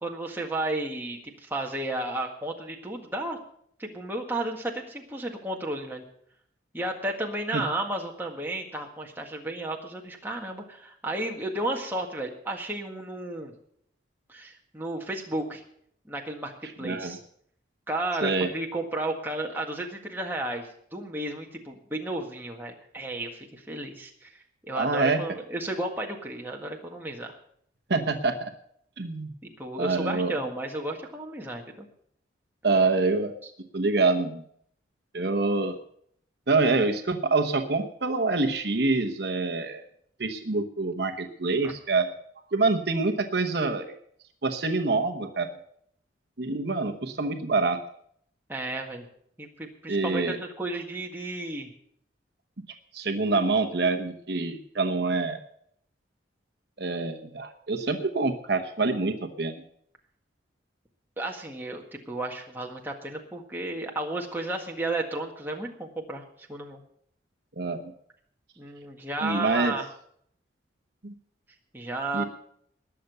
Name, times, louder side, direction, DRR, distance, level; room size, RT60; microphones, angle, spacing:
voice 1, 0.0-3.4 3.8-6.0 6.7-13.5 14.3-15.6 16.0-16.5 16.8-17.2 17.9-27.4 29.4-31.9 41.6-41.7 48.5-49.1 49.4-51.7 61.2-66.8 68.6-69.9 71.7-72.2, right 2 dB, 10° right, 0 dB, 1.7 m, -33 dB
voice 2, 16.8-17.2 18.2-18.5 24.7-25.2 27.9-28.5 29.0-29.3 29.8-30.4 32.6-33.3 33.7-34.4 35.1-35.7 36.5-39.8 40.2-42.1 42.5-43.9 44.4-45.5 46.4-47.8 49.9-50.4 52.9-55.4 56.8-59.6 67.6-67.9 69.2-69.7 71.0-71.1 72.1-72.2, right 3 dB, 55° right, 6 dB, 1.0 m, -26 dB
20.0 x 6.8 x 6.8 m, 0.67 s
head